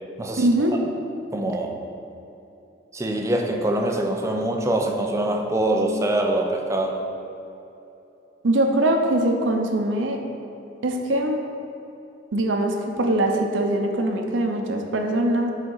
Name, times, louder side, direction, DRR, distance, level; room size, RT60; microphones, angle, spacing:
voice 1, 0.4-0.8 8.4-10.2 10.8-11.4 12.3-15.5, right 1 dB, 85° right, 3 dB, 0.6 m, -22 dB
voice 2, 1.3-1.7 2.9-7.0, right 1 dB, 15° right, 2 dB, 0.5 m, -24 dB
5.6 x 3.6 x 5.4 m, 2.9 s
head